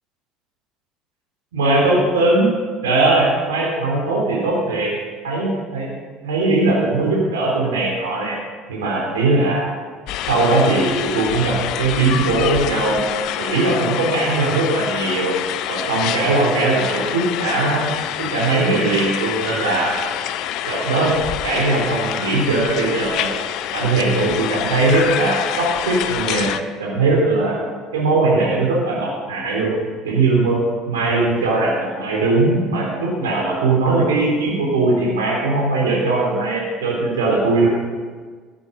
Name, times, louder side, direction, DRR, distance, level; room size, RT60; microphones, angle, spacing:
voice 1, 1.5-2.5 2.8-4.9 5.2-5.9 6.2-8.4 8.7-9.7 10.3-13.1 13.4-15.3 15.7-17.8 18.2-19.9 20.7-21.1 21.4-23.4 23.7-26.5 26.8-27.6 27.9-29.7 30.0-30.6 30.9-37.7, right 2 dB, 75° right, -3 dB, 3.6 m, -19 dB
sound 1, 10.1-26.6, left 11 dB, 55° left, 0.6 m, -26 dB
14.0 x 10.5 x 5.3 m, 1.5 s
figure-of-eight pair, 65°, 0 cm